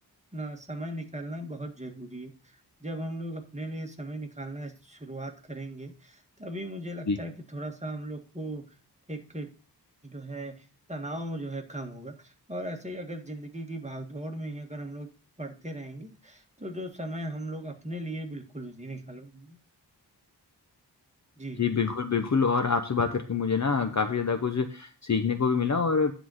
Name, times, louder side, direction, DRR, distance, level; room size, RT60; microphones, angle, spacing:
voice 1, 0.3-8.6 9.1-9.5 10.0-15.1 15.4-19.6 21.4-21.6, right 1 dB, 15° right, 3 dB, 1.6 m, -38 dB
voice 2, 21.6-26.1, left 5 dB, 45° left, 7 dB, 0.8 m, -26 dB
10.0 x 4.0 x 6.3 m, 0.37 s
wide cardioid pair, 95°, 40 cm